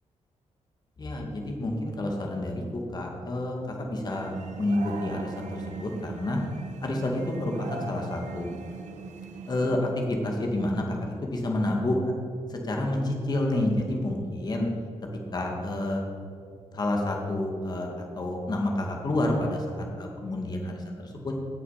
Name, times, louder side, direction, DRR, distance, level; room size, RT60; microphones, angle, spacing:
voice 1, 1.0-4.3 4.6-6.4 6.8-8.5 9.5-12.1 12.5-14.7 15.3-16.0 16.7-17.9 18.2-21.3, left 1 dB, 35° left, 1 dB, 2.1 m, -29 dB
sound 1, 4.1-9.8, right 4 dB, 85° right, 1.1 m, -40 dB
17.5 x 6.7 x 5.8 m, 2.4 s
wide cardioid pair, 145°, 12 cm